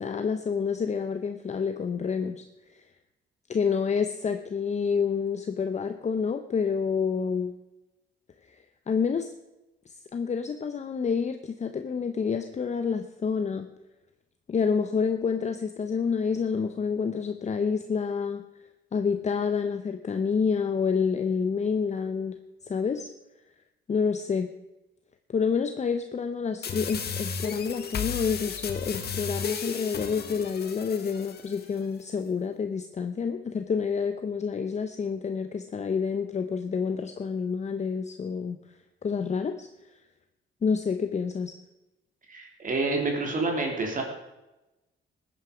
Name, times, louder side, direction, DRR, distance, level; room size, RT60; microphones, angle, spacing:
voice 1, 0.0-2.4 3.5-7.5 8.5-8.6 8.9-9.3 10.1-13.7 14.5-18.4 18.9-23.1 23.9-24.5 25.3-38.6 39.0-39.7 40.6-41.5, left 6 dB, 35° left, 8 dB, 0.8 m, -28 dB
sound 1, 26.6-31.6, left 6 dB, 55° left, 1.5 m, -34 dB
voice 2, 42.3-44.0, right 3 dB, 40° right, 1 dB, 3.2 m, -28 dB
14.5 x 9.3 x 5.0 m, 0.99 s
cardioid pair, 90°, 20 cm